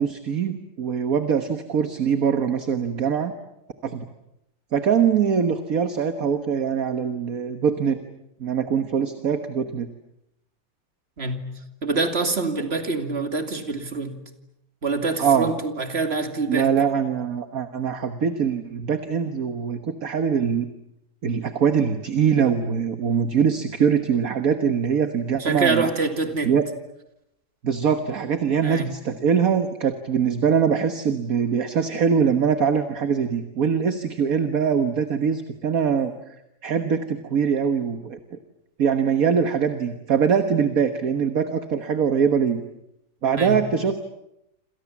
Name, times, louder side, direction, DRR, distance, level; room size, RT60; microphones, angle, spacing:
voice 1, 0.0-3.3 3.8-4.1 4.7-8.0 8.4-9.9 12.6-12.7 15.2-15.5 16.5-20.7 21.2-25.9 26.4-26.6 27.6-36.1 36.6-38.4 38.8-42.6 43.2-44.0, right 7 dB, 50° right, 8 dB, 1.7 m, -22 dB
voice 2, 11.2-11.6 11.8-14.2 14.8-16.7 25.4-26.5 28.6-28.9 43.4-43.6, right 3 dB, 30° right, 6 dB, 2.7 m, -25 dB
28.0 x 27.5 x 7.3 m, 0.83 s
omnidirectional pair, 2.1 m